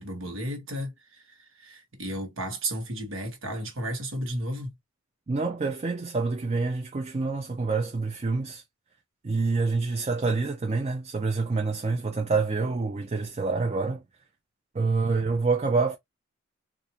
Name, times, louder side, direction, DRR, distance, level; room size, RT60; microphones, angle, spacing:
voice 1, 0.0-4.7, right 1 dB, 75° right, 1.3 m, -33 dB
voice 2, 5.3-8.6 9.2-14.0 14.7-16.0, right 3 dB, 30° right, 0.5 m, -27 dB
3.9 x 2.5 x 2.9 m
head